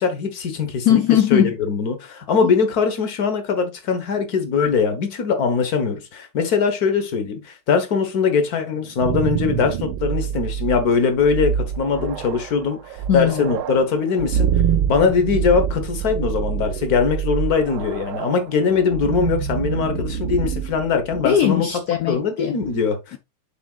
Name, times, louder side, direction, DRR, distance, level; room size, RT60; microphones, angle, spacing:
voice 1, 0.0-1.0 1.3-12.8 13.1-14.5 14.9-21.7 22.1-23.2, left 5 dB, 50° left, 1.6 m, -21 dB
voice 2, 0.8-1.5 2.4-2.5 13.1-13.5 21.2-22.6 23.1-23.2, left 10 dB, 90° left, 0.8 m, -19 dB
sound 1, 8.7-21.6, right 9 dB, 90° right, 1.5 m, -26 dB
6.8 x 6.0 x 2.4 m
omnidirectional pair, 2.2 m